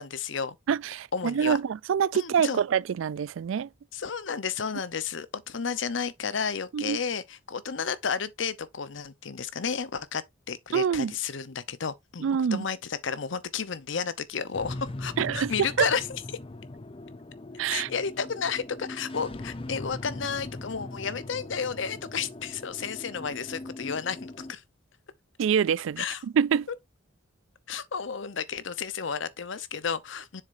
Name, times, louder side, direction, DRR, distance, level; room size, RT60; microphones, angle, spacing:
voice 1, 0.0-0.6 1.1-1.6 2.1-2.6 3.9-16.2 17.7-24.6 26.0-26.2 26.7-26.8 27.7-30.4, left 6 dB, 70° left, 0.7 m, -32 dB
voice 2, 0.7-3.7 6.7-7.0 10.7-11.1 12.2-12.7 15.2-15.5 15.8-15.9 17.6-17.9 25.4-26.0 26.4-26.7, right 7 dB, 75° right, 0.3 m, -25 dB
sound 1, 14.5-24.5, left 2 dB, 25° left, 0.5 m, -40 dB
7.3 x 6.6 x 2.6 m
head